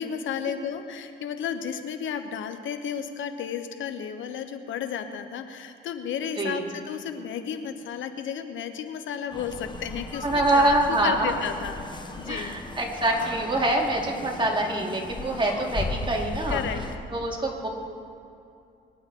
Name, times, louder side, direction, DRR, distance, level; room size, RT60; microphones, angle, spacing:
voice 1, 0.0-11.8 12.2-12.5 16.5-17.0, left 8 dB, 75° left, 8 dB, 1.1 m, -33 dB
voice 2, 6.4-6.7 10.2-11.3 12.3-16.6 17.1-17.7, right 1 dB, 25° right, -1 dB, 2.8 m, -25 dB
sound 1, 9.3-17.0, left 3 dB, 20° left, 1.4 m, -36 dB
23.5 x 10.5 x 4.3 m, 2.5 s
cardioid pair, 90°, 20 cm